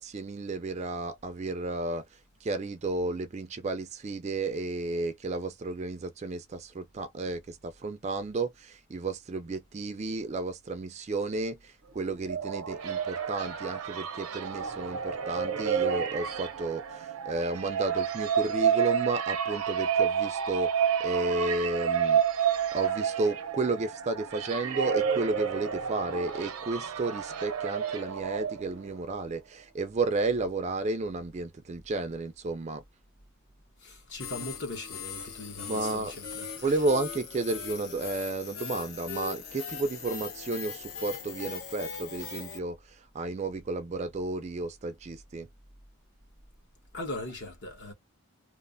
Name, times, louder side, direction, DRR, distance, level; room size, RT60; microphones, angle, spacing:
voice 1, 0.0-2.0 2.4-20.7 21.0-22.2 22.7-32.8 35.6-36.1 36.6-45.5, right 3 dB, 30° right, 0.3 m, -32 dB
sound 1, 12.0-29.0, right 7 dB, 85° right, 0.6 m, -30 dB
voice 2, 33.8-36.8 46.9-47.9, left 2 dB, 55° left, 1.0 m, -40 dB
sound 2, 34.2-42.6, left 6 dB, 75° left, 0.9 m, -40 dB
3.1 x 2.0 x 2.5 m
head